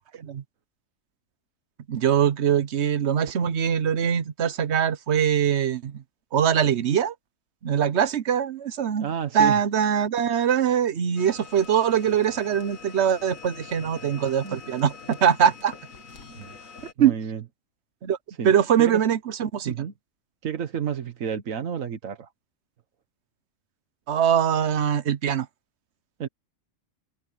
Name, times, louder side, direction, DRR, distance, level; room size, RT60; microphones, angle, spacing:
voice 1, 1.9-6.0 6.3-7.1 7.6-9.1 9.3-15.7 17.0-17.1 18.0-18.2 18.4-19.7 24.1-25.5, right 8 dB, 60° right, 1.1 m, -22 dB
voice 2, 9.0-9.6 13.8-14.1 14.4-14.6 16.4-16.6 17.0-17.4 18.4-18.5 18.8-19.0 19.7-19.9 20.4-22.3 26.2-26.3, right 8 dB, 80° right, 1.6 m, -30 dB
sound 1, 11.2-16.9, left 5 dB, 90° left, 2.4 m, -44 dB
omnidirectional pair, 1.4 m